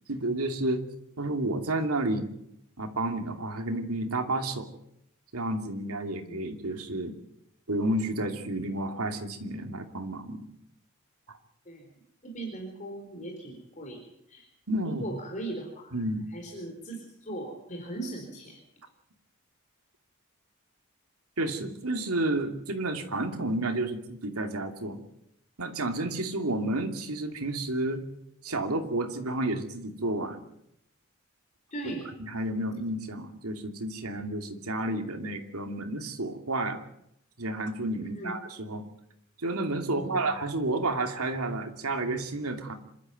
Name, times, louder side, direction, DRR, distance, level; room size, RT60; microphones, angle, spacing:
voice 1, 0.1-0.8 1.2-2.3 2.8-4.7 5.3-7.1 7.7-10.5 11.3-11.4 14.7-15.0 15.9-16.3 21.4-25.0 25.6-28.1 28.4-30.5 32.3-36.8 37.4-38.8 39.4-42.7, right 2 dB, 85° right, 5 dB, 2.6 m, -31 dB
voice 2, 12.2-14.0 14.3-14.5 14.8-16.0 16.3-18.6 21.5-21.7 31.7-32.1 38.0-38.3 39.9-40.2, right 2 dB, 35° left, 1 dB, 4.5 m, -39 dB
27.0 x 12.5 x 9.3 m, 0.78 s
head